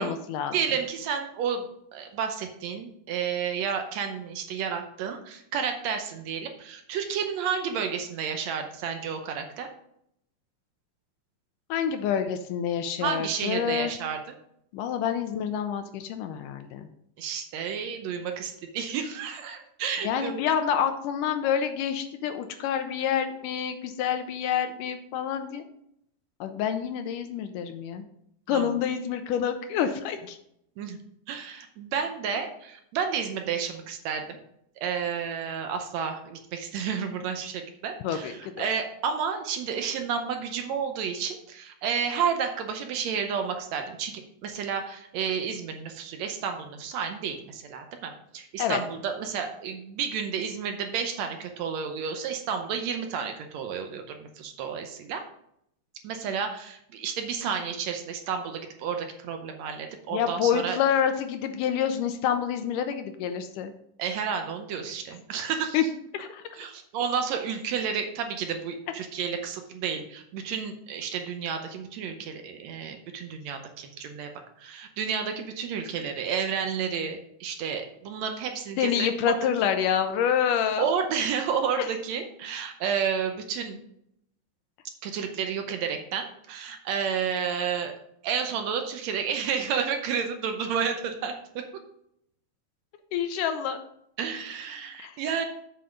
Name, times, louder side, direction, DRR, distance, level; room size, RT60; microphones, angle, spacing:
voice 1, 0.0-0.6 11.7-13.9 14.7-16.9 20.0-25.6 26.4-28.0 28.5-30.4 38.0-38.7 48.6-48.8 60.1-63.7 65.7-65.8 66.1-66.4 78.8-80.9 81.8-81.9 93.1-93.8 95.0-95.2, left 8 dB, 80° left, 8 dB, 2.0 m, -27 dB
voice 2, 0.5-1.6 1.9-9.7 13.0-14.2 17.2-20.4 28.5-28.7 30.8-31.0 31.3-34.2 34.8-55.2 56.0-60.8 64.0-65.9 66.6-74.3 74.6-79.1 80.8-83.8 85.0-87.9 88.2-91.6 94.2-95.5, right 7 dB, 80° right, 5 dB, 1.5 m, -31 dB
7.8 x 5.5 x 5.1 m, 0.74 s
omnidirectional pair, 4.1 m